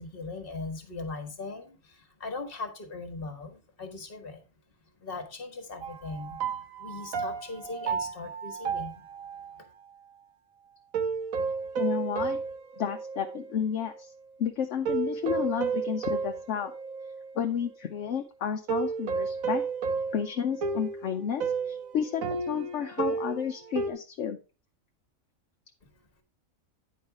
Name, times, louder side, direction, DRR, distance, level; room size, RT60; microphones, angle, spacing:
voice 1, 0.0-4.4 5.0-6.4 6.8-9.1 9.6-9.7, left 3 dB, 45° left, 7 dB, 1.7 m, -39 dB
sound 1, 5.8-9.6 10.9-13.5 13.9-14.0 14.9-17.3 18.7-23.9, right 5 dB, 90° right, 1.5 m, -32 dB
voice 2, 11.8-12.4 12.8-14.1 14.4-16.7 17.3-19.6 20.1-24.4, left 8 dB, 65° left, 5 dB, 1.0 m, -31 dB
9.6 x 4.8 x 4.7 m, 0.33 s
omnidirectional pair, 1.4 m